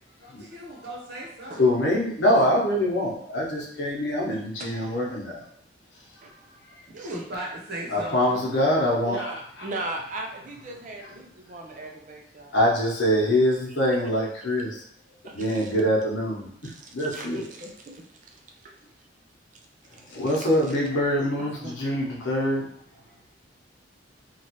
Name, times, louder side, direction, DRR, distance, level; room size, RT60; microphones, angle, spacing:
voice 1, 0.4-1.6 2.2-2.3 6.9-8.4, right 1 dB, 60° right, -3 dB, 0.9 m, -37 dB
voice 2, 1.6-5.4 6.7-6.8 7.9-9.7 10.6-11.2 12.5-14.8 15.3-17.5 19.9-22.7, left 1 dB, 75° left, -2 dB, 0.9 m, -25 dB
voice 3, 9.6-12.6 15.2-15.7 16.6-18.1 20.7-20.8 21.4-21.7, right 2 dB, 45° right, 1 dB, 0.5 m, -38 dB
3.0 x 2.4 x 2.9 m, 0.68 s
head